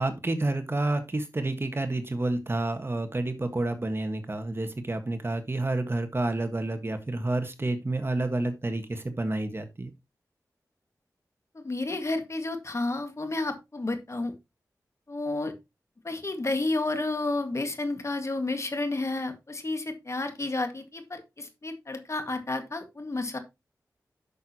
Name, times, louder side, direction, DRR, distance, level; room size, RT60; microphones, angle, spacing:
voice 1, 0.0-9.9, right 2 dB, 35° right, 7 dB, 1.5 m, -29 dB
voice 2, 11.5-14.3 15.1-15.5 16.0-23.4, left 2 dB, 45° left, 7 dB, 1.9 m, -31 dB
10.5 x 6.5 x 2.9 m, 0.23 s
wide cardioid pair, 60°, 7 cm